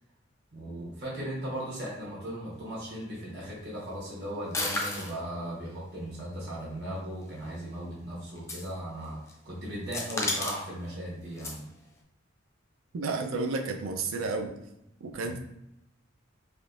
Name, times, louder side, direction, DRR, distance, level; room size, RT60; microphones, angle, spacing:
voice 1, 0.5-9.2 9.4-11.6 15.2-15.3, equal, 55° right, -6 dB, 1.0 m, -37 dB
sound 1, 4.5-5.2 7.0-7.1 8.4-8.7 9.0-9.3 9.9-10.7 11.4-11.6, left 2 dB, 15° left, 0.4 m, -32 dB
voice 2, 12.9-14.6 15.0-15.4, right 3 dB, 80° right, 4 dB, 0.4 m, -31 dB
3.5 x 2.6 x 2.4 m, 0.86 s
head